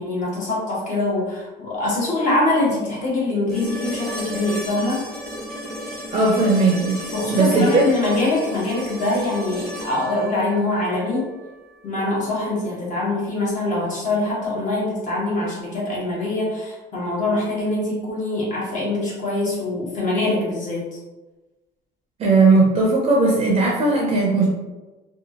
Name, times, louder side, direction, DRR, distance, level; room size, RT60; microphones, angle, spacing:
voice 1, 0.0-5.0 7.1-11.3 11.8-20.8, left 2 dB, 45° left, -6 dB, 1.1 m, -24 dB
sound 1, 3.5-11.6 13.7-13.8, equal, ahead, 0.9 m, -33 dB
voice 2, 6.1-7.0 7.3-7.9 22.2-24.5, right 3 dB, 35° right, -2 dB, 0.5 m, -17 dB
2.8 x 2.3 x 2.8 m, 1.1 s
cardioid pair, 150°, 18 cm